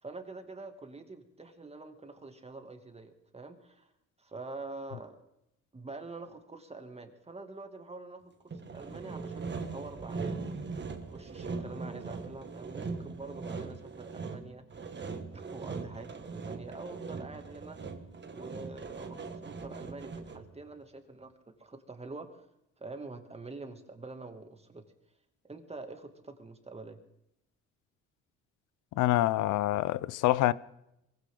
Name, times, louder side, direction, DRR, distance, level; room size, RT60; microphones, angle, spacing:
voice 1, 0.0-3.9 4.2-5.2 5.7-10.6 11.0-17.9 18.3-22.5 22.8-24.8 25.4-27.0, right 3 dB, 20° right, 2.5 m, -46 dB
Sawing, 8.5-20.6, right 4 dB, 35° right, 1.9 m, -40 dB
voice 2, 29.0-30.5, left 15 dB, 85° left, 0.7 m, -26 dB
23.0 x 16.0 x 3.9 m
cardioid pair, 90°, 30 cm